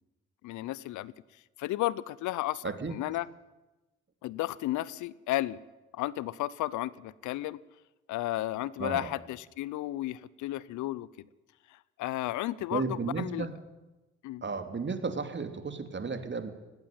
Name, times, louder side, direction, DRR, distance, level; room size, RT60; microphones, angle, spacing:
voice 1, 0.4-1.1 1.6-3.3 4.2-5.6 5.9-7.6 8.1-11.3 11.7-13.5 14.2-14.4, left 16 dB, 70° left, 21 dB, 0.7 m, -33 dB
voice 2, 2.6-3.0 8.8-9.1 12.7-13.5 14.4-16.5, right 4 dB, 35° right, 8 dB, 2.9 m, -33 dB
18.0 x 17.0 x 9.4 m, 1.1 s
hypercardioid pair, 45°, 31 cm